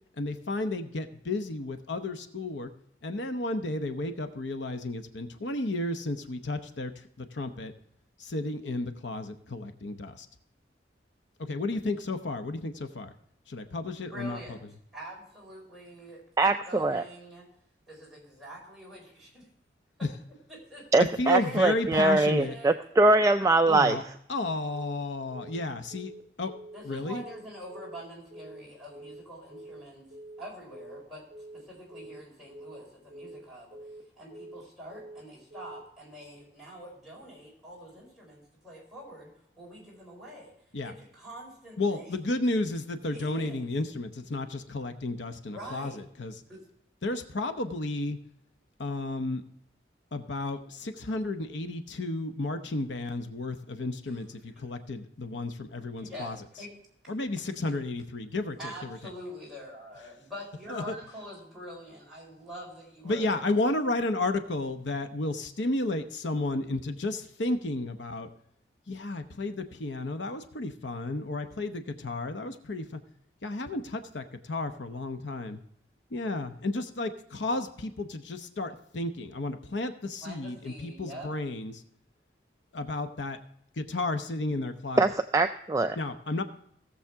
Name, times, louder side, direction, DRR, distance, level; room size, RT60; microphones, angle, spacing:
voice 1, 0.2-2.7 3.0-7.7 8.2-10.3 11.4-13.1 13.5-14.6 20.0-20.1 21.0-22.6 23.7-24.0 24.3-26.1 26.4-26.5 26.8-27.2 40.7-40.9 41.8-46.4 47.0-48.2 48.8-49.4 50.1-56.4 57.1-59.0 60.7-61.0 63.0-68.3 68.9-73.0 73.4-75.6 76.1-81.8 82.7-83.4 83.8-85.0 86.0-86.4, left 2 dB, 85° left, 8 dB, 0.9 m, -32 dB
voice 2, 14.1-14.6 14.9-17.5 17.9-19.5 20.5-20.9 21.4-22.7 26.7-30.1 30.4-31.2 31.5-33.8 34.2-40.5 40.8-42.1 43.1-43.6 45.5-46.0 46.5-46.6 56.0-56.7 58.6-63.3 80.2-81.3, equal, ahead, -5 dB, 4.5 m, -45 dB
voice 3, 16.4-17.0 20.9-24.0 85.0-86.0, right 2 dB, 20° right, 7 dB, 0.3 m, -23 dB
Telephone, 24.7-25.0 25.3-25.6 25.9-26.2 26.5-26.8 27.1-27.4 27.7-28.0 28.3-28.6 28.9-29.2 29.5-29.8 30.1-30.4 30.7-31.0 31.3-31.6 31.9-32.2 32.5-32.8 33.1-33.4 33.7-34.0 34.3-34.6 34.9-35.2 35.5-35.8, right 1 dB, 55° right, 1.3 m, -46 dB
17.5 x 7.1 x 3.5 m, 0.71 s
head